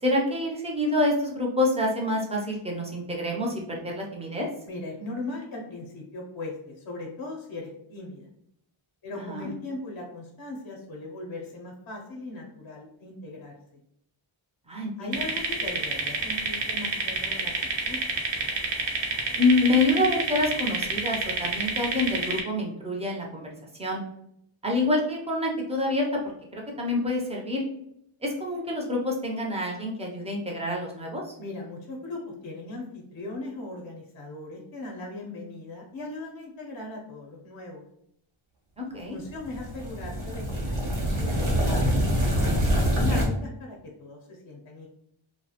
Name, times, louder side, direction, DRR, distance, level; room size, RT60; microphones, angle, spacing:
voice 1, 0.0-4.5 9.2-9.5 14.7-15.2 19.4-23.5 23.8-24.0 24.6-26.1 26.5-27.7 28.2-31.3 38.8-39.1, left 2 dB, 15° right, -1 dB, 0.4 m, -27 dB
voice 2, 4.6-8.3 9.0-13.5 15.0-18.0 31.4-37.8 38.9-40.9 41.2-42.0 42.2-44.9, left 2 dB, 50° left, 0 dB, 0.5 m, -38 dB
sound 1, 15.1-22.4, right 3 dB, 65° right, 0.6 m, -28 dB
sound 2, 39.4-43.2, equal, 90° right, 1.0 m, -25 dB
2.3 x 2.1 x 2.7 m, 0.73 s
wide cardioid pair, 140°, 49 cm